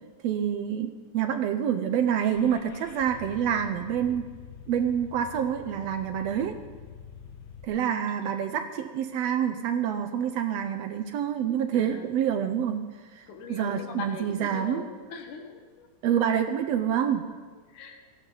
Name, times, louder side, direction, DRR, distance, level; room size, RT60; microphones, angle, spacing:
voice 1, 0.2-4.3 4.7-6.6 7.6-12.8 13.1-14.8 16.0-17.2, right 9 dB, 70° right, 7 dB, 1.7 m, -27 dB
Car / Engine starting, 2.2-7.6, left 6 dB, 65° left, 1.1 m, -46 dB
voice 2, 8.1-8.6 11.7-12.1 13.3-15.9 17.7-18.0, left 4 dB, 85° left, 4 dB, 3.0 m, -41 dB
18.0 x 14.5 x 4.0 m, 1.5 s
omnidirectional pair, 3.4 m